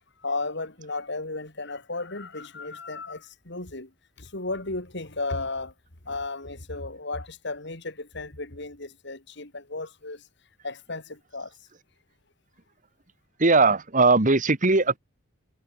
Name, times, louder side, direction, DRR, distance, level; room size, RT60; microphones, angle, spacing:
voice 1, 0.2-3.2 3.5-3.9 4.3-5.7 6.1-10.2 10.6-11.0 11.3-11.5, left 3 dB, 60° left, 3.6 m, -34 dB
voice 2, 13.4-15.0, right 3 dB, 40° right, 1.8 m, -19 dB
head